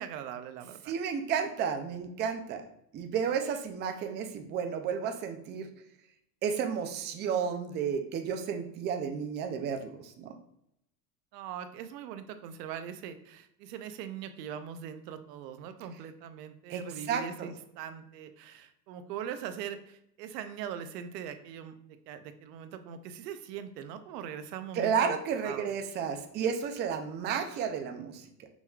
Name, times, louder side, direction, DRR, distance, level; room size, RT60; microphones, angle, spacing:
voice 1, 0.0-0.9 11.3-21.7 22.1-25.1 25.4-25.7, right 8 dB, 80° right, 10 dB, 0.6 m, -41 dB
voice 2, 0.9-2.6 2.9-5.7 6.4-10.4 16.7-16.8 17.1-17.5 24.7-28.2, right 7 dB, 25° right, 5 dB, 0.3 m, -32 dB
5.3 x 3.0 x 2.3 m, 0.75 s
supercardioid pair, 105°, 48 cm